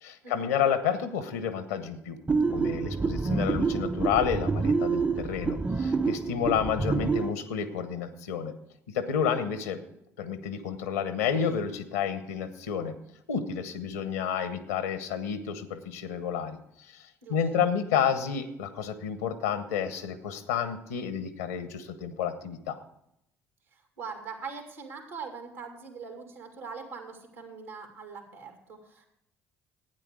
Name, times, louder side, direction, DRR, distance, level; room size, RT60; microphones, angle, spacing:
voice 1, 0.0-2.2 2.5-8.5 8.9-9.8 10.2-12.9 13.3-16.6 16.9-17.0 17.3-22.8, left 7 dB, 80° left, 12 dB, 1.0 m, -30 dB
sound 1, 2.3-7.3, right 4 dB, 20° right, 0.6 m, -27 dB
voice 2, 17.2-17.6 23.7-29.1, right 5 dB, 80° right, 3 dB, 2.3 m, -42 dB
12.0 x 9.2 x 4.9 m, 0.78 s
hypercardioid pair, 55°, 8 cm